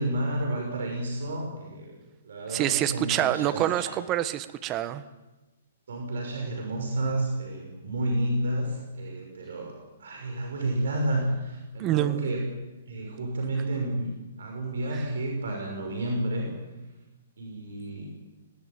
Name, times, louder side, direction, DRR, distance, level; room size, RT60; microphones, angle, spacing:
voice 1, 0.0-1.9 2.2-3.9 5.9-12.5 12.9-14.1 14.4-16.5 17.4-18.1, right 1 dB, 70° right, 2 dB, 5.9 m, -30 dB
voice 2, 2.5-5.0 11.8-12.3 14.9-15.0, right 13 dB, 30° right, 12 dB, 1.4 m, -26 dB
19.0 x 18.0 x 9.0 m, 1.1 s
hypercardioid pair, 130°, 0 cm